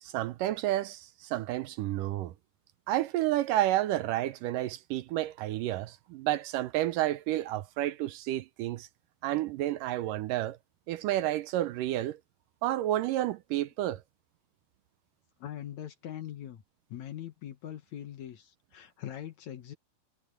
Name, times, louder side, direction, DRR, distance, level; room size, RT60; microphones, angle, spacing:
voice 1, 0.0-2.3 2.9-8.9 9.2-10.6 10.9-12.2 12.6-14.0, right 14 dB, 75° right, 2.2 m, -30 dB
voice 2, 15.4-16.6 16.9-19.7, left 11 dB, 60° left, 2.3 m, -42 dB
omnidirectional pair, 4.1 m